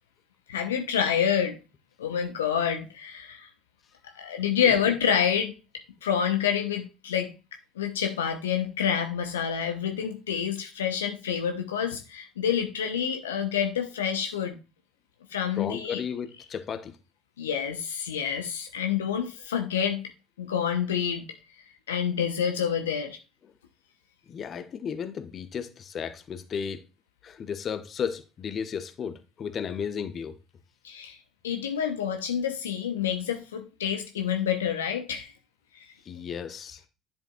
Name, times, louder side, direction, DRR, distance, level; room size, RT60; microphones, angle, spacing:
voice 1, 0.5-1.6 2.0-3.5 4.2-5.5 6.0-7.3 7.8-14.6 15.3-16.0 17.4-20.1 20.4-21.2 21.9-23.2 30.8-31.2 31.4-35.3 35.7-35.8, left 8 dB, 75° left, 0.8 m, -28 dB
voice 2, 15.6-17.0 24.3-26.8 27.2-30.4 36.1-36.8, left 7 dB, 40° left, 1.0 m, -34 dB
10.0 x 7.4 x 2.4 m
figure-of-eight pair, 60°, 0 cm